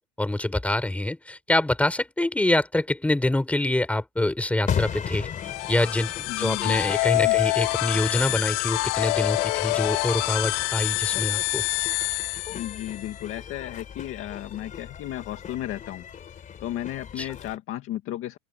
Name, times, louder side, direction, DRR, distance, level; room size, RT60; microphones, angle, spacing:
voice 1, 0.2-5.3 5.7-6.1 6.4-11.6 17.2-17.3, left 1 dB, 5° left, 3.5 m, -25 dB
sound 1, 4.7-17.6, left 8 dB, 20° left, 3.1 m, -37 dB
sound 2, 5.4-13.0, left 25 dB, 80° left, 2.8 m, -26 dB
voice 2, 6.3-6.8 7.2-7.4 12.5-16.0 16.6-18.4, left 13 dB, 40° left, 1.8 m, -34 dB
open air
cardioid pair, 170°, 35 cm